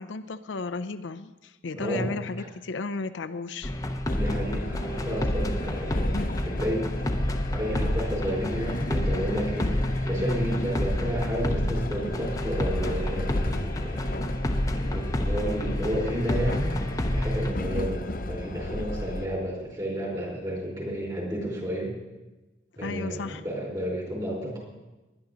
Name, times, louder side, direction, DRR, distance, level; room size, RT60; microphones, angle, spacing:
voice 1, 0.0-3.7 22.8-23.4, left 3 dB, 80° left, 9 dB, 0.6 m, -34 dB
voice 2, 1.7-2.5 4.1-6.9 7.5-9.8 10.1-14.0 14.7-16.8 17.1-21.9 22.8-24.6, equal, 20° right, -2 dB, 4.7 m, -31 dB
sound 1, 3.6-17.5, left 1 dB, 20° left, 0.8 m, -29 dB
Train, 4.1-19.3, left 1 dB, 50° left, 0.8 m, -33 dB
20.0 x 10.5 x 4.0 m, 1.1 s
head